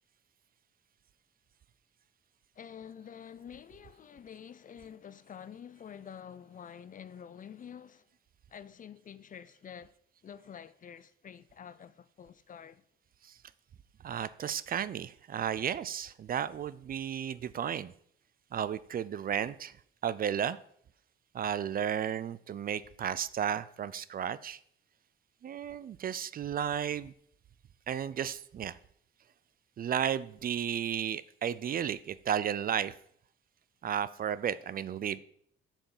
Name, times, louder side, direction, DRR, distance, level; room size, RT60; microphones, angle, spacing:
voice 1, 2.6-8.1 8.5-9.9 10.2-12.8, left 8 dB, 40° left, 0.5 m, -48 dB
voice 2, 14.0-17.9 18.5-19.7 20.0-20.6 21.3-24.6 25.4-27.1 27.9-28.8 29.8-32.9 33.8-35.2, right 9 dB, 45° right, 0.5 m, -33 dB
7.1 x 5.7 x 7.3 m
cardioid pair, 90°, 20 cm